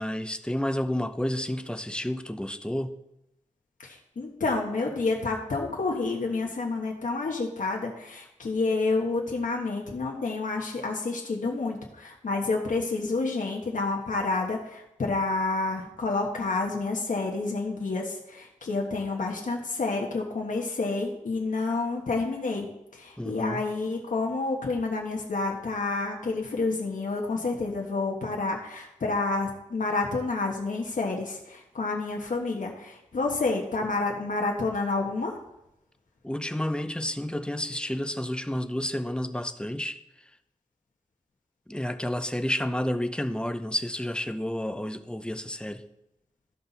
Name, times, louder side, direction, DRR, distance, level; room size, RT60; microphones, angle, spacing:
voice 1, 0.0-3.0 23.2-23.6 36.2-40.0 41.7-45.8, left 1 dB, 5° left, 0.6 m, -30 dB
voice 2, 3.8-35.3, left 3 dB, 80° left, 1.3 m, -29 dB
13.0 x 5.7 x 4.1 m
wide cardioid pair, 80°, 13 cm